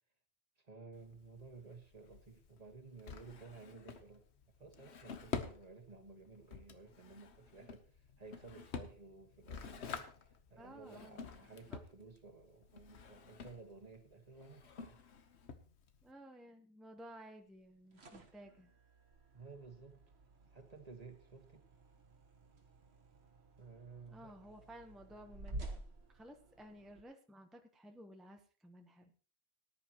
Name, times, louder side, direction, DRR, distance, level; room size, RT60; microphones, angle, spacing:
voice 1, 0.6-4.2 4.6-15.0 19.3-20.0 20.5-21.7 23.6-24.3, right 4 dB, 40° right, 4 dB, 1.5 m, -55 dB
Drawer open or close, 0.9-16.1, left 5 dB, 90° left, 1.2 m, -49 dB
voice 2, 10.6-11.2 11.7-11.8 16.0-18.7 24.1-25.8 26.1-29.1, equal, ahead, 4 dB, 0.9 m, -55 dB
sound 1, 17.6-27.0, right 2 dB, 80° right, 1.6 m, -52 dB
18.5 x 10.5 x 3.0 m, 0.40 s
omnidirectional pair, 1.1 m